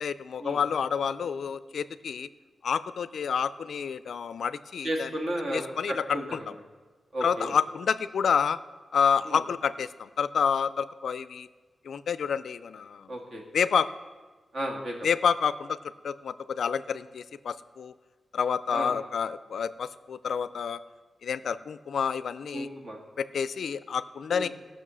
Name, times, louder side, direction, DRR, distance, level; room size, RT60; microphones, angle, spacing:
voice 1, 0.0-2.3 2.6-5.1 5.5-6.5 7.2-8.6 8.9-11.5 11.8-13.1 13.5-13.9 15.0-15.8 16.0-17.9 18.3-20.8 21.2-22.7 23.2-24.5, left 6 dB, 70° left, 14 dB, 0.4 m, -29 dB
voice 2, 4.8-6.2 7.1-7.5 9.3-9.4 13.1-13.4 14.5-14.9 18.7-18.9 22.5-23.0 24.3-24.5, right 1 dB, 45° right, 0 dB, 1.7 m, -33 dB
14.5 x 6.2 x 6.2 m, 1.3 s
wide cardioid pair, 180°, 0 cm